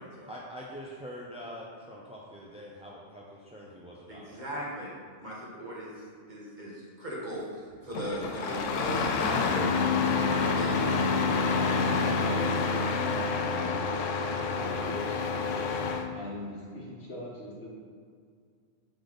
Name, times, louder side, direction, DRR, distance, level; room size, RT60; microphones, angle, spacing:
voice 1, 0.3-4.5, equal, 10° right, -4 dB, 0.4 m, -44 dB
voice 2, 4.1-4.9 5.2-10.2 10.6-11.0, right 1 dB, 40° right, -6 dB, 1.4 m, -38 dB
Engine starting, 7.9-16.1, left 4 dB, 85° left, 0.9 m, -28 dB
voice 3, 12.0-15.6 16.1-17.7, left 1 dB, 60° left, -3 dB, 1.4 m, -41 dB
8.0 x 3.4 x 4.0 m, 2.1 s
omnidirectional pair, 1.3 m